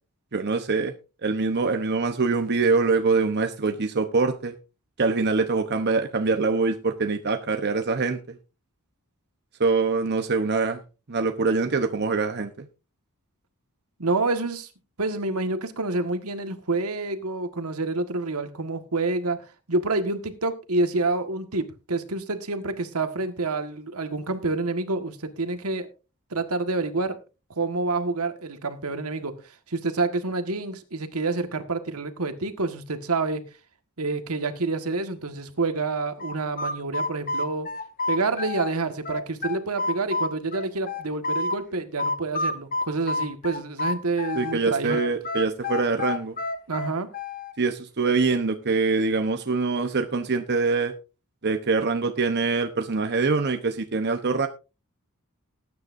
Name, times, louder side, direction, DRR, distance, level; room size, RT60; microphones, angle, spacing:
voice 1, 0.3-0.9 1.2-4.5 5.0-8.4 9.6-10.8 11.1-12.7 44.3-46.4 47.6-50.9 51.4-54.5, right 4 dB, 50° right, 6 dB, 0.9 m, -24 dB
voice 2, 14.0-14.7 15.0-19.4 19.7-25.9 26.3-27.2 27.5-29.3 29.7-33.4 34.0-37.7 38.1-45.0 46.7-47.1, right 3 dB, 75° right, 8 dB, 1.6 m, -28 dB
sound 1, 36.2-38.7 39.0-41.6 42.0-44.6 44.9-47.5, left 3 dB, 40° left, 1.0 m, -29 dB
19.5 x 9.5 x 2.6 m, 0.30 s
head